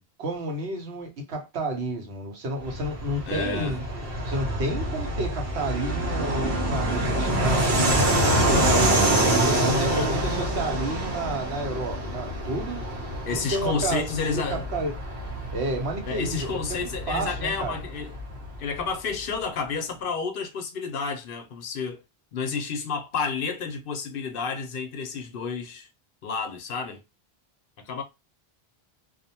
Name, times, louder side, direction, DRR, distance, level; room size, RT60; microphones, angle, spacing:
voice 1, 0.2-3.8 4.2-8.7 9.3-12.8 13.3-14.9 15.5-17.8, right 2 dB, 90° right, 1.1 m, -31 dB
Fixed-wing aircraft airplane, 2.6-18.8, right 1 dB, 70° right, 0.9 m, -26 dB
voice 2, 3.3-3.7 8.9-9.0 9.8-10.1 13.3-14.6 16.0-18.2 18.6-22.0 22.3-25.9 26.2-27.0 27.9-28.0, left 5 dB, 65° left, 0.7 m, -30 dB
2.5 x 2.1 x 2.7 m
omnidirectional pair, 1.1 m